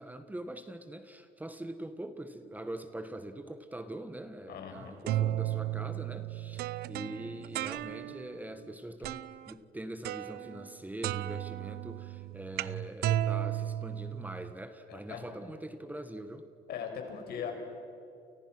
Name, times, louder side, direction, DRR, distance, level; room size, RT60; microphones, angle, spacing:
voice 1, 0.0-16.4, right 1 dB, 10° right, 9 dB, 1.5 m, -43 dB
voice 2, 4.5-4.9 14.9-15.3 16.7-17.5, left 7 dB, 70° left, 4 dB, 5.7 m, -39 dB
sound 1, 4.7-8.3 9.0-9.5 10.0-10.8 11.0-14.5, right 13 dB, 70° right, 0.7 m, -34 dB
29.5 x 29.5 x 6.1 m, 2.6 s
cardioid pair, 110°, 17 cm